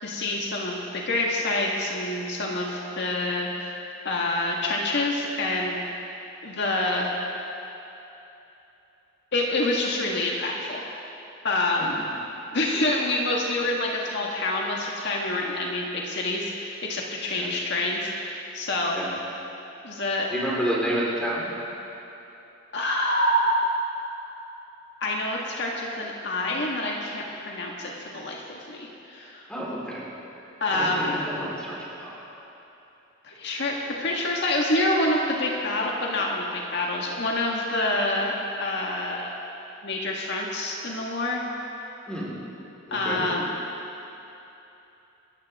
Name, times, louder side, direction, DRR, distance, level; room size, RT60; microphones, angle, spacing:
voice 1, 0.0-3.7 4.0-5.8 6.4-7.1 9.3-10.9 11.4-12.0 12.5-19.0 19.8-20.3 22.7-23.8 25.0-29.4 30.6-31.1 33.2-38.3 38.6-39.4 39.8-41.4 42.9-43.4, left 1 dB, 60° left, -2 dB, 1.7 m, -27 dB
voice 2, 20.3-21.5 29.5-30.0 30.7-32.2 42.1-42.3 42.9-43.3, right 1 dB, 5° left, -6 dB, 4.1 m, -30 dB
27.0 x 14.5 x 3.6 m, 3.0 s
head